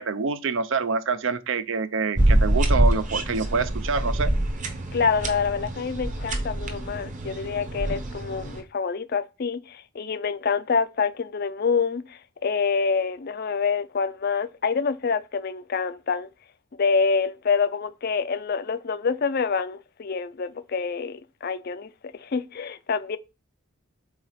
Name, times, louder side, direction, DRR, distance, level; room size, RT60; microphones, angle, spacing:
voice 1, 0.0-4.3, right 4 dB, 60° right, 0.5 m, -26 dB
sound 1, 2.2-8.6, right 1 dB, 35° right, 0.9 m, -25 dB
voice 2, 4.9-16.3 16.8-23.2, left 5 dB, 45° left, 0.4 m, -26 dB
4.9 x 4.0 x 5.6 m
head